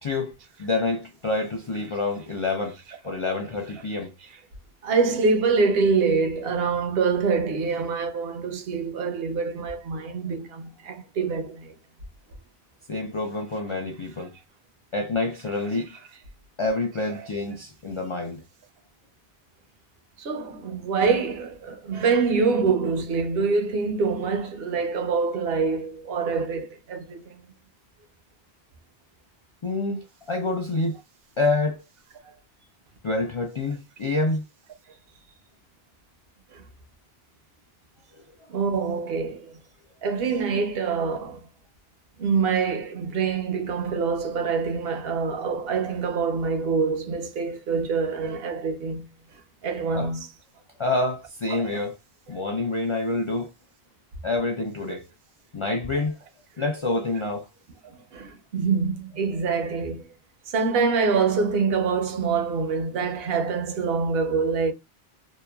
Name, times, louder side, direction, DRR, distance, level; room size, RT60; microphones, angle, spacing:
voice 1, 0.0-2.8 3.0-4.1 12.9-14.4 14.9-15.9 16.6-18.4 29.6-31.0 31.4-31.8 33.0-34.4 49.9-50.1 50.8-52.0 52.3-53.5 54.2-55.1 55.5-56.2 56.6-57.5, left 2 dB, 55° left, 0.3 m, -27 dB
voice 2, 4.8-11.7 20.2-27.4 36.5-36.6 38.5-39.5 40.0-41.4 42.2-49.1 49.6-50.3 51.5-51.8 58.1-60.0 60.5-64.7, right 5 dB, 75° right, 0.9 m, -25 dB
2.8 x 2.1 x 2.2 m
omnidirectional pair, 1.0 m